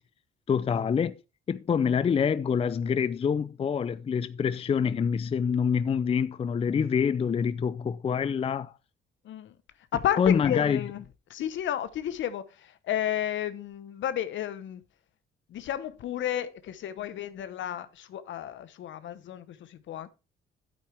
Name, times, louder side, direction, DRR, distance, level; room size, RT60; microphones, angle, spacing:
voice 1, 0.5-1.2 1.5-8.7 10.2-10.8, left 7 dB, 30° left, 0.4 m, -26 dB
voice 2, 9.9-11.0 11.3-14.8 15.5-20.1, left 11 dB, 70° left, 1.0 m, -32 dB
8.6 x 8.5 x 3.3 m
cardioid pair, 90°, 20 cm